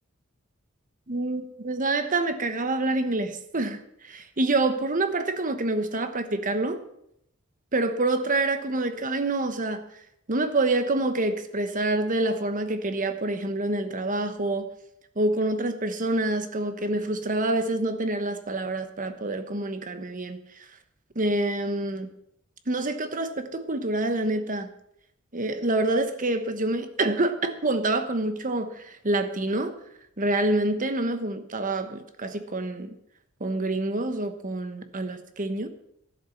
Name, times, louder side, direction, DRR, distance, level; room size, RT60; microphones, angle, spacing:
voice 1, 1.1-6.8 7.7-9.8 10.3-14.7 15.2-20.4 21.1-22.1 22.7-24.7 25.3-29.7 30.2-32.9 33.4-35.7, right 2 dB, 40° right, 1.2 m, -27 dB
12.5 x 11.0 x 5.8 m
head